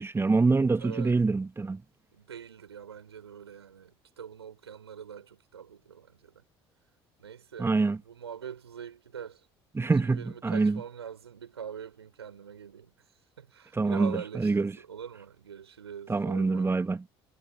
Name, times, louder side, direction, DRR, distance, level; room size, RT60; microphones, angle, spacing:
voice 1, 0.0-1.8 7.6-8.0 9.7-10.8 13.7-14.7 16.1-17.0, right 3 dB, 20° right, 1.9 m, -25 dB
voice 2, 0.8-1.2 2.1-6.4 7.2-7.7 8.0-9.4 10.0-12.9 13.4-16.8, right 8 dB, 85° right, 6.5 m, -43 dB
figure-of-eight pair, 60°, 13 cm